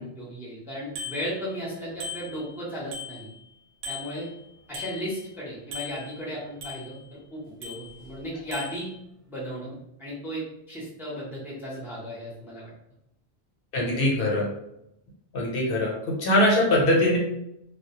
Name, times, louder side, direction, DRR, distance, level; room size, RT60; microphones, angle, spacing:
voice 1, 0.1-3.3 3.8-4.3 4.7-7.0 7.3-8.9 9.3-12.7, equal, 5° right, -6 dB, 0.6 m, -35 dB
Bicycle bell, 1.0-1.7 2.0-3.5 3.8-5.4 5.7-7.2 7.6-8.2 8.5-8.9, left 3 dB, 90° right, 0.9 m, -40 dB
voice 2, 13.7-14.5 15.3-15.9 16.2-17.2, left 1 dB, 65° left, -3 dB, 0.8 m, -21 dB
2.1 x 2.0 x 2.8 m, 0.81 s
omnidirectional pair, 1.0 m